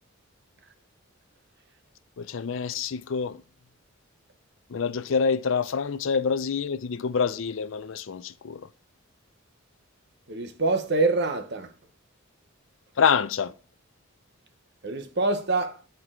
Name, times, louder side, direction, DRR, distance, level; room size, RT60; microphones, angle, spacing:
voice 1, 2.2-3.4 4.7-8.7 13.0-13.5, left 6 dB, 65° left, 0.4 m, -26 dB
voice 2, 10.3-11.7 14.8-15.8, right 3 dB, 50° right, 0.8 m, -25 dB
10.0 x 4.6 x 3.6 m
head